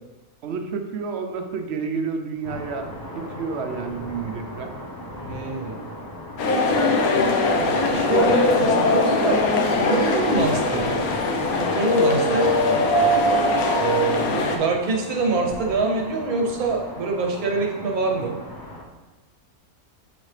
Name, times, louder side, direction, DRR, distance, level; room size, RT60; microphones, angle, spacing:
voice 1, 0.4-4.8 12.2-12.5, right 5 dB, 60° right, 5 dB, 0.8 m, -30 dB
sound 1, 2.4-18.8, left 1 dB, 30° left, 0.3 m, -38 dB
voice 2, 5.3-5.8 7.5-9.4 9.8-11.0 11.7-12.9 13.8-18.4, right 4 dB, 90° right, 1 dB, 1.4 m, -25 dB
sound 2, 6.4-14.6, left 2 dB, 85° left, 1.2 m, -21 dB
7.3 x 4.1 x 3.2 m, 1.1 s
omnidirectional pair, 1.5 m